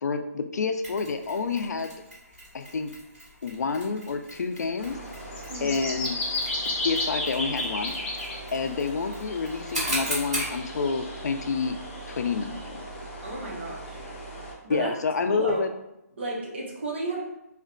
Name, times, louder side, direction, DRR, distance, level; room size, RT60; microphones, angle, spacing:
voice 1, 0.0-1.9 2.5-2.9 3.4-5.0 5.6-6.2 6.7-8.0 8.5-11.8 12.1-12.8 14.7-15.7, left 4 dB, 90° left, 7 dB, 0.4 m, -28 dB
Mechanisms, 0.8-10.6, right 1 dB, 15° right, 1.3 m, -38 dB
sound 1, 4.8-14.5, left 1 dB, 45° left, 0.9 m, -34 dB
voice 2, 5.5-5.8 13.2-14.1 14.6-15.0 15.3-15.6 16.2-17.2, right 2 dB, 40° right, -2 dB, 0.7 m, -33 dB
sound 2, 11.8-11.9 12.5-12.6 13.2-13.4 14.0-14.1 14.7-14.9 15.5-15.6, left 2 dB, 20° left, 0.5 m, -45 dB
2.4 x 2.2 x 3.6 m, 0.88 s
hypercardioid pair, 180°, 9 cm